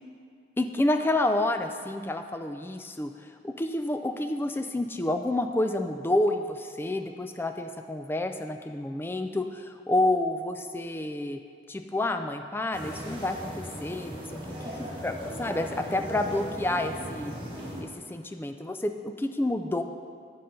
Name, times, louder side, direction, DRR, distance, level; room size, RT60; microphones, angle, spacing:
voice 1, 0.6-3.1 3.4-11.4 11.7-14.2 14.8-17.3 17.8-19.8, left 1 dB, 10° left, 7 dB, 0.3 m, -29 dB
sound 1, 12.7-17.8, equal, 25° right, 1.5 m, -38 dB
7.7 x 5.6 x 5.2 m, 2.2 s
head